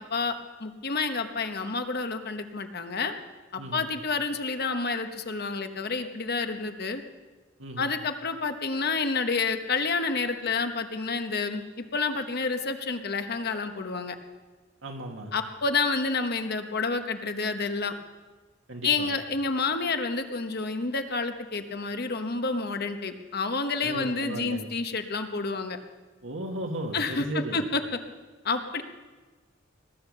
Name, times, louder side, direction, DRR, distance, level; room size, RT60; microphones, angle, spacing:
voice 1, 0.0-3.1 3.5-7.0 7.8-14.2 15.3-17.9 18.8-25.8 26.9-28.0 28.4-28.8, left 4 dB, 50° left, 7 dB, 1.2 m, -29 dB
voice 2, 7.6-7.9 14.8-15.3 18.7-19.1 23.8-24.6 26.2-27.6, right 1 dB, 70° right, 3 dB, 2.2 m, -35 dB
20.0 x 10.5 x 6.8 m, 1.3 s
head